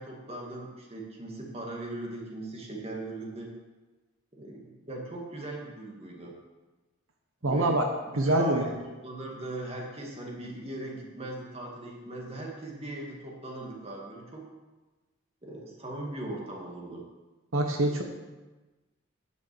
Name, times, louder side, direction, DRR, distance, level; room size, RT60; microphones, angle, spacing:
voice 1, 0.0-3.5 4.3-6.4 7.4-14.4 15.4-17.1, right 1 dB, 30° right, -1 dB, 2.1 m, -39 dB
voice 2, 7.4-7.8 8.2-8.7 17.5-18.0, right 1 dB, 75° right, 3 dB, 1.1 m, -24 dB
9.9 x 6.6 x 7.7 m, 1.2 s
head